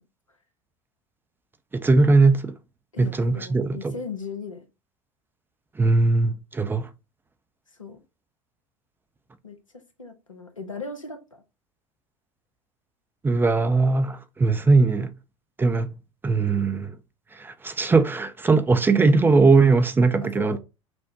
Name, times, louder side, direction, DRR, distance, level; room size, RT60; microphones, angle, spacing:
voice 1, 1.7-2.5 3.0-3.9 5.8-6.9 13.2-15.1 15.6-15.9 16.2-17.0 17.3-20.6, right 3 dB, 15° right, 0.5 m, -20 dB
voice 2, 2.9-4.6 7.7-8.0 9.4-11.4 20.2-20.6, left 4 dB, 85° left, 0.8 m, -38 dB
5.9 x 2.1 x 2.7 m
figure-of-eight pair, 75°, 16 cm